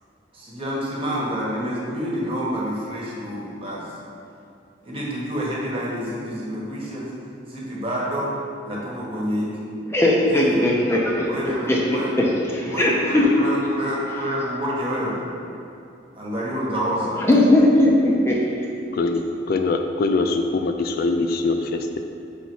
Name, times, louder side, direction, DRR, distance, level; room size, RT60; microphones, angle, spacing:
voice 1, 0.3-3.8 4.8-7.1 7.5-8.3 8.6-9.6 10.3-10.6 11.3-12.1 12.7-15.2 16.1-17.2, equal, 30° right, -6 dB, 1.3 m, -28 dB
voice 2, 9.9-11.3 11.7-13.2 17.2-18.4, left 1 dB, 15° left, -3 dB, 0.6 m, -18 dB
voice 3, 18.9-22.0, left 3 dB, 55° left, 5 dB, 0.3 m, -23 dB
5.6 x 4.0 x 4.6 m, 2.6 s
head